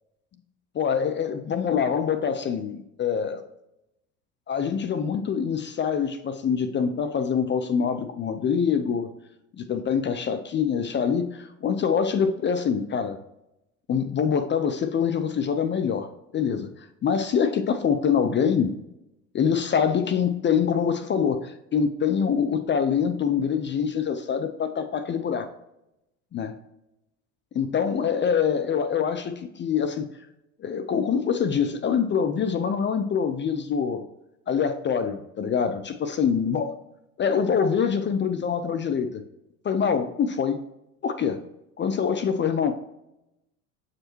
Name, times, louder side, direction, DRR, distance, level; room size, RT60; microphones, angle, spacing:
voice 1, 0.7-3.4 4.5-9.1 9.5-13.2 13.9-18.7 19.3-25.5 26.3-26.5 27.5-30.1 30.6-34.0 34.5-36.7 37.2-39.2 39.6-40.6 41.0-41.4 41.8-42.7, left 7 dB, 25° left, 9 dB, 0.5 m, -25 dB
7.4 x 4.9 x 3.0 m, 0.88 s
hypercardioid pair, 75°, 43 cm